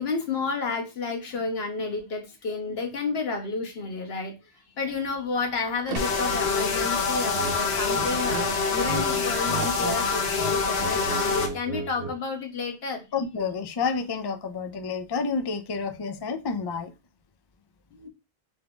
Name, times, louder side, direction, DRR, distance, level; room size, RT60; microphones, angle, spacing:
voice 1, 0.0-4.3 4.8-13.0 17.9-18.1, left 4 dB, 70° left, 1.3 m, -31 dB
sound 1, 4.8-10.8, right 4 dB, 65° right, 0.9 m, -42 dB
sound 2, 6.0-11.5, left 4 dB, 90° left, 1.1 m, -26 dB
sound 3, 7.3-7.6 7.9-9.0 9.3-10.0 10.3-12.2, right 5 dB, 90° right, 1.0 m, -35 dB
voice 2, 13.1-16.9, left 5 dB, 45° left, 0.3 m, -29 dB
3.4 x 3.4 x 3.8 m
omnidirectional pair, 1.1 m